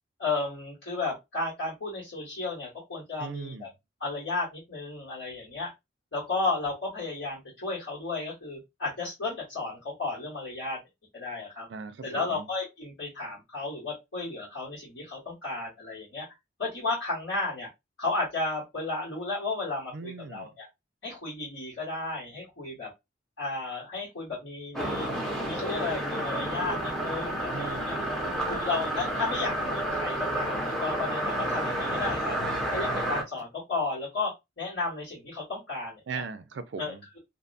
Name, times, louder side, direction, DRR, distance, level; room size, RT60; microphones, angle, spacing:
voice 1, 0.2-3.7 4.0-5.7 6.1-10.8 11.1-11.7 12.0-16.2 16.6-17.7 18.0-20.7 21.0-22.9 23.4-25.1 25.4-28.0 28.5-32.4 32.7-34.3 34.6-36.2 36.8-37.2, left 3 dB, 80° left, 1.6 m, -33 dB
voice 2, 3.2-3.7 11.7-12.5 19.9-20.5 27.5-28.6 36.1-37.0, right 5 dB, 70° right, 0.4 m, -39 dB
sound 1, 24.7-33.2, right 1 dB, ahead, 0.6 m, -30 dB
2.7 x 2.2 x 2.5 m
head